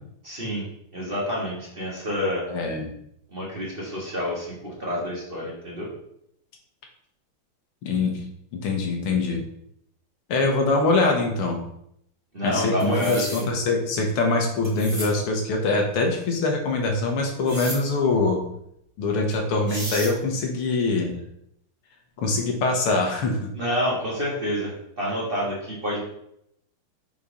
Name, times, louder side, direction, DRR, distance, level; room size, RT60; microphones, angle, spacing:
voice 1, 0.2-0.6 0.9-2.5 3.3-5.9 12.3-13.5 23.5-26.0, equal, 30° right, -4 dB, 1.5 m, -28 dB
voice 2, 2.5-2.9 7.8-8.1 8.5-9.4 10.3-11.6 12.4-18.4 19.0-21.1 22.2-23.5, left 3 dB, 80° left, 2 dB, 2.1 m, -23 dB
sound 1, 12.8-13.4 14.6-15.1 17.5-17.8 19.3-19.4 19.7-20.1, right 1 dB, 15° right, 1.8 m, -33 dB
5.5 x 4.2 x 5.0 m, 0.75 s
omnidirectional pair, 2.4 m